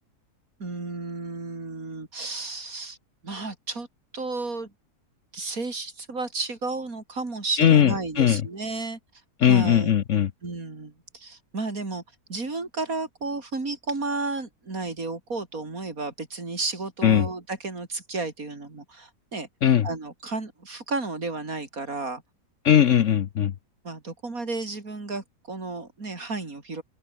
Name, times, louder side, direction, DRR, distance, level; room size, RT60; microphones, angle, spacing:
voice 1, 0.6-3.0 3.2-3.9 4.1-4.7 5.3-9.0 9.4-9.9 10.4-12.0 12.3-19.5 19.8-22.2 23.8-26.8, right 3 dB, 65° right, 4.3 m, -32 dB
voice 2, 7.6-8.4 9.4-10.3 17.0-17.3 19.6-19.9 22.6-23.5, left 9 dB, 60° left, 1.1 m, -19 dB
open air
omnidirectional pair, 1.6 m